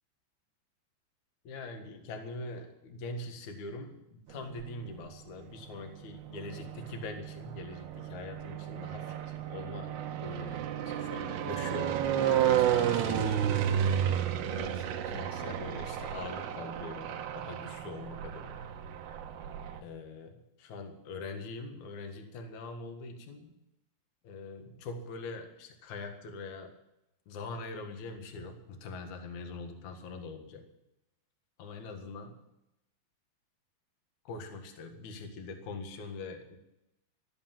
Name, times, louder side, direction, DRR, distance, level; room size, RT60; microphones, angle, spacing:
voice 1, 1.4-9.2 9.5-10.0 10.2-12.1 12.5-13.7 14.5-18.6 19.8-23.5 24.2-26.8 27.3-30.7 31.6-32.4 34.2-36.6, left 3 dB, 55° left, 5 dB, 2.4 m, -43 dB
sound 1, 4.3-5.1 5.8-19.8, right 9 dB, 75° right, 2.9 m, -32 dB
13.5 x 11.5 x 7.4 m, 0.88 s
omnidirectional pair, 5.4 m